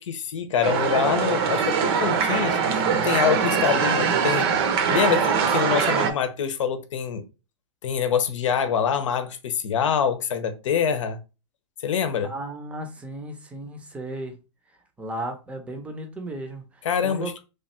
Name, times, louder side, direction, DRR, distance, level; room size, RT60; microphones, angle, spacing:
voice 1, 0.0-4.5 4.9-7.2 7.8-11.2 11.8-12.3 16.8-17.3, left 7 dB, 80° left, 0.7 m, -25 dB
sound 1, 0.6-6.1, right 6 dB, 50° right, 0.7 m, -22 dB
voice 2, 12.2-14.4 14.7-17.4, right 1 dB, 10° right, 0.6 m, -35 dB
3.2 x 2.3 x 4.1 m
hypercardioid pair, 135°, 16 cm